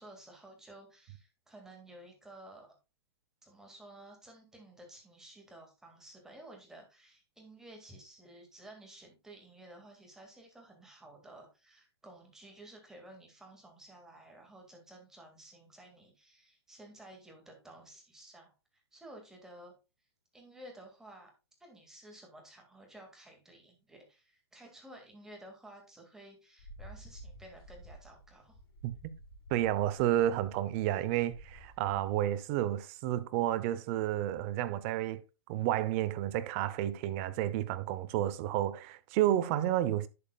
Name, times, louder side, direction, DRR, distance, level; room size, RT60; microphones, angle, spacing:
voice 1, 0.0-2.7 3.4-18.5 18.9-19.7 20.3-21.3 21.6-28.6, right 1 dB, 5° right, 2.1 m, -53 dB
sound 1, 26.6-32.2, right 1 dB, 60° left, 4.9 m, -52 dB
voice 2, 29.5-35.2 35.5-40.1, right 13 dB, 30° right, 0.7 m, -31 dB
11.0 x 7.3 x 2.3 m
hypercardioid pair, 160°, 14 cm